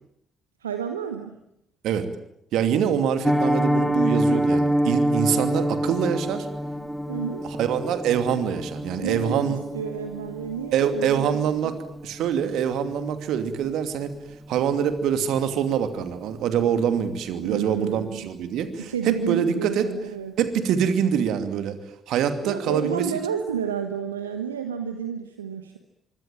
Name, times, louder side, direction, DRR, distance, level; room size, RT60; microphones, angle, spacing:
voice 1, 0.6-1.4 7.1-7.4 9.0-11.7 17.3-18.3 18.8-20.4 22.4-25.8, right 7 dB, 85° right, 7 dB, 1.3 m, -31 dB
voice 2, 2.5-6.5 7.4-9.6 10.7-11.8 12.0-14.1 14.5-19.9 20.4-21.8 22.1-23.0, right 8 dB, 65° right, 9 dB, 2.7 m, -24 dB
Piano, 3.2-14.1 14.4-14.6 14.9-15.1 15.5-15.7 16.0-16.1, equal, 5° left, 2.9 m, -27 dB
25.0 x 24.5 x 9.1 m, 0.74 s
figure-of-eight pair, 40°, 0 cm